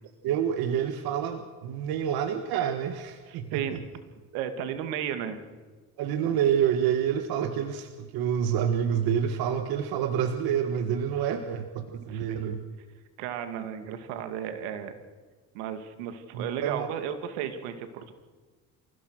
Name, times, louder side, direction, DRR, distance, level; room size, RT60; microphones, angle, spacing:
voice 1, 0.2-3.8 6.0-12.6 16.3-16.9, right 8 dB, 70° right, 7 dB, 1.8 m, -28 dB
voice 2, 3.3-3.8 4.3-5.4 12.1-12.6 13.2-15.0 15.5-18.1, right 9 dB, 90° right, 8 dB, 2.6 m, -34 dB
27.5 x 16.0 x 6.5 m, 1.4 s
cardioid pair, 105°, 38 cm